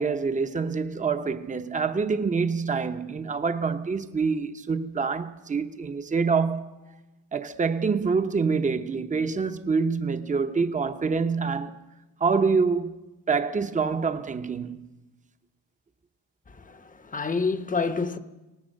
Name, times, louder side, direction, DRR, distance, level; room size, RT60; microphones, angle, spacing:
voice 1, 0.0-6.8 7.3-11.8 12.2-13.0 13.3-14.8, right 5 dB, 20° right, 0.8 m, -26 dB
voice 2, 16.5-18.2, left 4 dB, 20° left, 0.9 m, -28 dB
24.0 x 18.5 x 6.4 m
wide cardioid pair, 160°, 38 cm